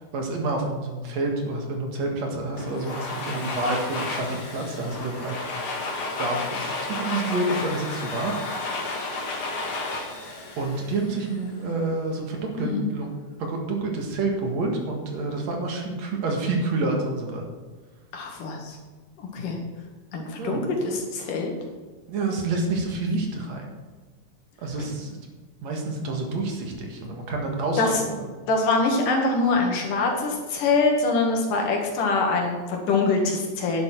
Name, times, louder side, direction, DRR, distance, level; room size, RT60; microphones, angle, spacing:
voice 1, 0.1-5.5 6.2-8.3 8.6-9.1 10.6-13.1 13.4-17.4 20.4-20.7 22.1-23.7 24.6-25.3 25.6-27.8 28.2-28.3, right 2 dB, 60° right, 2 dB, 2.8 m, -28 dB
Domestic sounds home sounds, 2.6-11.5, left 3 dB, 50° left, 2.3 m, -32 dB
voice 2, 12.6-12.9 18.1-18.8 19.2-19.6 20.1-21.5 27.8-28.0 28.5-33.8, left 3 dB, 85° left, 1 dB, 3.6 m, -24 dB
11.0 x 10.5 x 4.6 m, 1.4 s
omnidirectional pair, 3.6 m